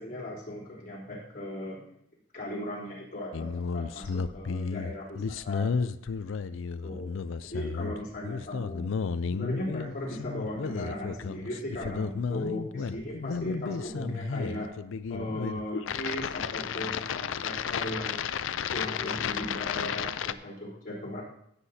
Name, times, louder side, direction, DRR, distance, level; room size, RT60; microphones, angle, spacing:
voice 1, 0.0-1.9 2.3-5.9 6.3-6.4 6.8-7.1 7.4-8.9 9.3-14.7 15.1-18.2 18.7-21.2, left 1 dB, 40° left, -6 dB, 3.5 m, -37 dB
sound 1, 3.3-20.3, left 6 dB, 80° left, 0.4 m, -33 dB
15.5 x 8.2 x 2.7 m, 0.74 s
head